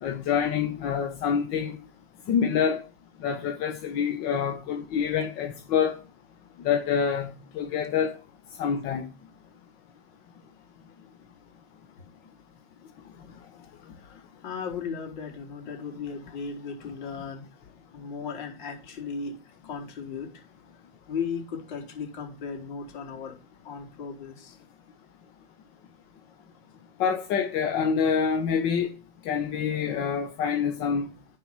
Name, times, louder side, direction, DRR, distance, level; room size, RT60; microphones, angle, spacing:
voice 1, 0.0-1.8 2.3-2.8 3.2-6.0 6.6-8.1 8.6-9.0 27.0-28.9 29.2-31.1, left 7 dB, 30° left, 1.2 m, -26 dB
voice 2, 13.9-17.5 17.9-19.4 19.6-20.5 21.1-23.3 23.6-24.6, left 5 dB, 50° left, 4.3 m, -36 dB
10.0 x 4.9 x 5.9 m
hypercardioid pair, 140°, 30 cm